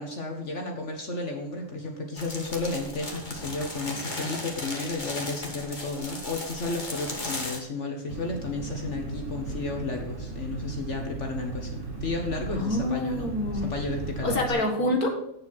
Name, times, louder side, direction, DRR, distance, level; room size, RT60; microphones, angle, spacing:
voice 1, 0.0-13.3 13.6-14.6, left 3 dB, 55° left, 2 dB, 1.7 m, -33 dB
sound 1, 2.2-7.6, left 2 dB, 30° left, 1.9 m, -36 dB
Engine, 8.1-14.5, right 2 dB, 60° right, 2.9 m, -36 dB
voice 2, 12.5-13.7 14.2-15.1, left 1 dB, 80° left, 1 dB, 2.2 m, -26 dB
8.7 x 7.5 x 6.1 m, 0.81 s
omnidirectional pair, 1.5 m